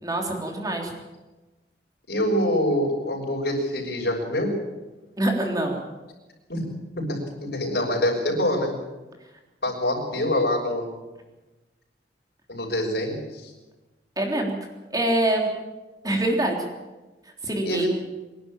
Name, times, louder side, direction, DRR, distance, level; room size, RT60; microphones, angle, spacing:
voice 1, 0.0-0.9 5.2-5.8 14.2-14.5 14.9-15.5 16.0-16.6 17.4-17.9, right 1 dB, 20° right, 2 dB, 3.5 m, -24 dB
voice 2, 2.1-4.5 6.5-6.6 7.0-8.7 9.6-10.9 12.5-13.5 17.6-17.9, left 1 dB, 60° left, -1 dB, 6.4 m, -25 dB
25.0 x 11.5 x 9.0 m, 1.1 s
head